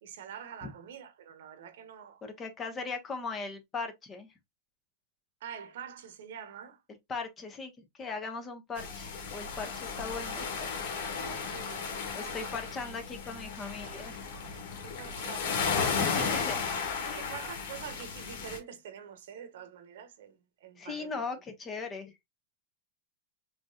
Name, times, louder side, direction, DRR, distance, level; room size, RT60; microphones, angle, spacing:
voice 1, 0.0-2.2 5.4-6.8 11.2-12.5 14.8-16.4 17.2-21.1, right 8 dB, 75° right, 1.1 m, -46 dB
voice 2, 2.2-4.3 7.1-10.5 12.1-14.2 16.0-16.7 17.0-17.3 20.8-22.2, left 4 dB, 25° left, 1.3 m, -39 dB
sound 1, 8.8-18.6, left 5 dB, 65° left, 1.9 m, -34 dB
5.1 x 3.1 x 2.4 m
supercardioid pair, 125°, 0 cm